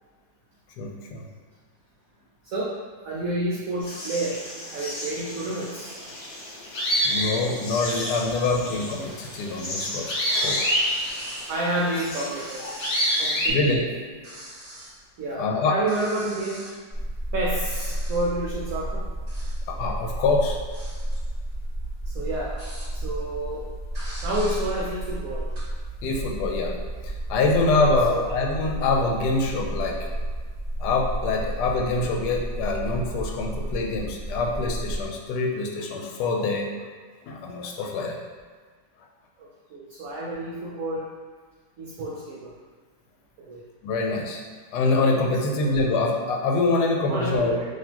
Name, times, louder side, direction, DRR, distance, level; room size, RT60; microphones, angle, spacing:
voice 1, 0.8-1.2 7.0-10.8 12.6-12.8 13.4-13.8 15.4-15.8 19.7-20.6 26.0-26.7 27.3-30.0 30.8-36.7 37.3-38.2 43.8-44.4 44.7-47.5, left 3 dB, 85° left, 1 dB, 1.2 m, -25 dB
voice 2, 3.0-6.0 11.5-12.6 13.2-13.9 14.8-14.9 15.2-16.6 17.3-19.0 22.1-22.6 22.9-23.6 24.2-25.5 27.7-28.3 39.4-41.1 41.8-42.5 43.4-43.6 45.5-45.7 47.1-47.7, right 1 dB, 70° right, -4 dB, 0.9 m, -30 dB
sound 1, 3.8-13.5, equal, 65° left, 1.4 m, -29 dB
sound 2, 9.0-10.0 10.3-13.7 14.0-15.0 15.4-15.5 15.8-17.3 17.6-18.4 19.0-19.8 20.2-23.2 23.6-23.7 23.9-25.6, right 1 dB, 35° right, 0.7 m, -44 dB
sound 3, 16.9-35.1, right 1 dB, 5° left, 1.0 m, -32 dB
4.0 x 2.8 x 2.8 m, 1.5 s
omnidirectional pair, 1.7 m